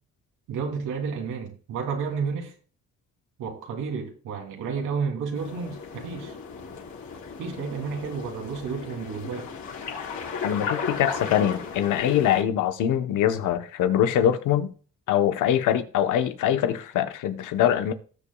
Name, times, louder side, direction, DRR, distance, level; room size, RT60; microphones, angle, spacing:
voice 1, 0.5-2.5 3.4-6.3 7.4-9.5, right 5 dB, 90° right, 3.2 m, -31 dB
sound 1, 5.3-12.4, left 5 dB, 70° left, 4.3 m, -35 dB
voice 2, 10.4-14.7 15.1-17.9, left 10 dB, 90° left, 1.1 m, -23 dB
18.5 x 7.0 x 2.4 m
cardioid pair, 90°, 30 cm